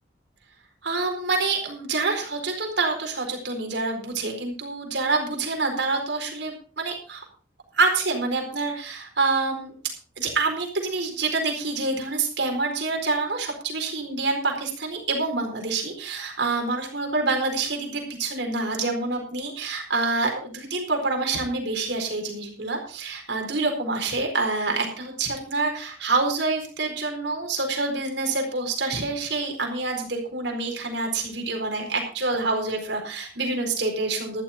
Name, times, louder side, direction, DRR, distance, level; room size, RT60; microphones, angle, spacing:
voice 1, 0.8-7.2 7.7-9.7 10.2-34.4, right 3 dB, 75° right, 2 dB, 4.3 m, -27 dB
13.5 x 12.5 x 4.2 m, 0.41 s
head